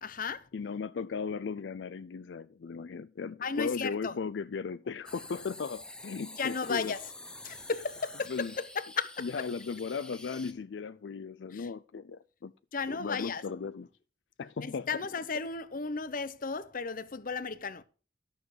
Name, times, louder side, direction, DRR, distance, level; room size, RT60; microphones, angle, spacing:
voice 1, 0.0-0.5 3.4-4.1 6.4-7.1 7.4-9.3 11.5-11.7 12.7-13.4 14.6-17.8, left 5 dB, 50° left, 0.8 m, -34 dB
voice 2, 0.5-6.9 8.3-8.5 9.2-12.5 12.9-13.9 14.4-14.9, left 5 dB, 75° left, 0.4 m, -37 dB
sound 1, 5.1-10.5, left 1 dB, 5° left, 0.7 m, -48 dB
12.0 x 6.4 x 6.5 m
head